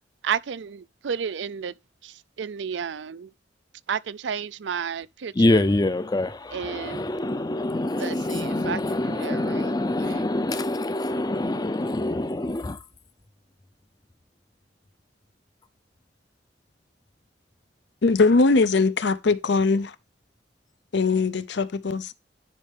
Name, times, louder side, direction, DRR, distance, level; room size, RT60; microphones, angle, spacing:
voice 1, 0.2-1.7 2.0-2.1 2.4-3.3 3.9-5.6 6.5-7.1 8.0-10.2, right 7 dB, 75° right, 0.5 m, -32 dB
voice 2, 5.3-12.8, left 2 dB, 20° left, 0.5 m, -25 dB
voice 3, 18.0-19.9 20.9-22.1, left 3 dB, 65° left, 0.6 m, -21 dB
10.5 x 5.4 x 3.4 m
head